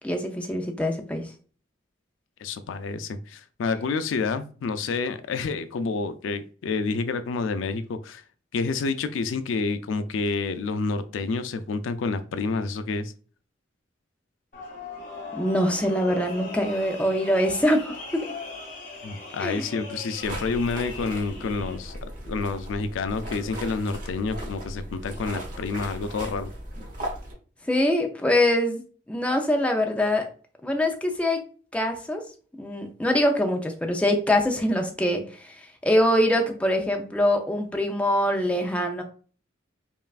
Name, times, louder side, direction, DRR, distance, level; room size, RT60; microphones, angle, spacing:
voice 1, 0.0-1.2 15.3-18.2 19.4-19.7 27.7-28.8 29.1-30.3 30.6-31.4 31.7-32.2 32.6-39.0, left 1 dB, 5° left, 0.5 m, -24 dB
voice 2, 2.4-8.2 8.5-13.1 19.0-21.9 22.3-26.5, left 4 dB, 90° left, 0.4 m, -29 dB
sound 1, 14.5-21.8, left 3 dB, 45° left, 1.9 m, -39 dB
sound 2, 20.2-27.3, equal, 45° right, 1.0 m, -37 dB
5.3 x 2.4 x 2.4 m
head